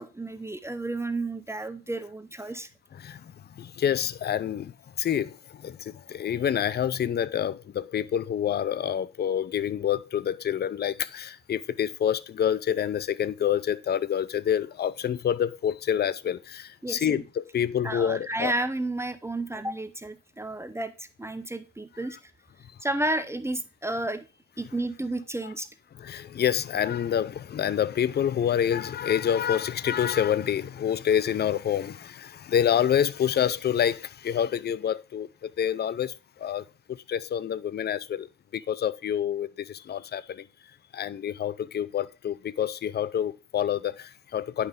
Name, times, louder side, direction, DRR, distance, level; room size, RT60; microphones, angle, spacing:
voice 1, 0.0-2.7 16.8-17.2 17.8-22.2 22.8-24.3 24.6-25.7, right 2 dB, 10° right, 0.7 m, -32 dB
voice 2, 2.9-18.5 26.0-40.5 40.9-44.7, left 9 dB, 35° left, 0.5 m, -27 dB
9.4 x 5.7 x 3.6 m
cardioid pair, 90°, 30 cm